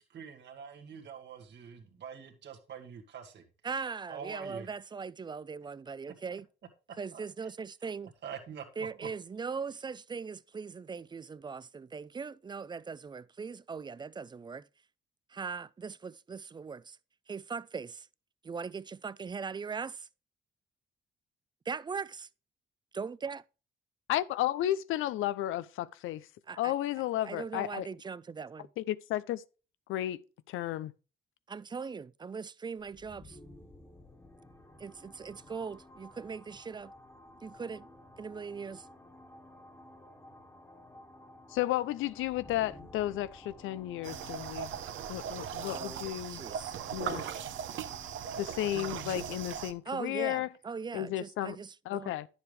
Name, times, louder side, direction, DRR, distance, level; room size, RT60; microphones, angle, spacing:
voice 1, 0.1-3.4 4.1-4.7 7.1-7.5 8.2-8.6, right 7 dB, 60° right, 1.7 m, -45 dB
voice 2, 3.6-6.5 7.0-8.1 8.8-14.7 15.3-17.0 17.3-18.1 18.4-20.1 21.7-22.3 22.9-23.4 26.5-26.7 27.2-28.7 31.5-33.4 34.8-36.9 37.4-37.9 38.2-38.9 45.6-47.4 49.9-52.1, right 5 dB, 20° right, 0.4 m, -40 dB
voice 3, 24.1-26.3 26.6-27.9 28.8-29.4 29.9-30.2 30.5-30.9 41.5-44.7 45.1-46.4 46.9-47.2 48.4-50.5 50.9-51.6 51.9-52.3, left 13 dB, 85° left, 0.5 m, -33 dB
sound 1, 32.8-50.5, left 1 dB, 10° left, 1.5 m, -54 dB
sound 2, 44.0-49.7, right 8 dB, 75° right, 0.9 m, -39 dB
10.5 x 7.2 x 3.2 m
cardioid pair, 90°, 20 cm